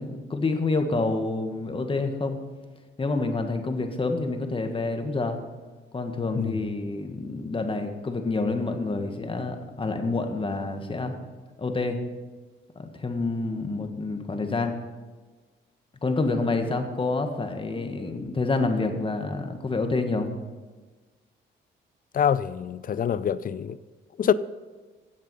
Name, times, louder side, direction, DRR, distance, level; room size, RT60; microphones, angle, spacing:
voice 1, 0.0-2.4 3.0-5.4 5.9-11.1 11.6-12.0 12.7-14.8 16.0-20.3, left 3 dB, 25° left, 1.6 m, -28 dB
voice 2, 22.1-23.8 24.2-24.3, left 8 dB, 45° left, 0.5 m, -25 dB
15.5 x 7.3 x 5.5 m
cardioid pair, 90°, 20 cm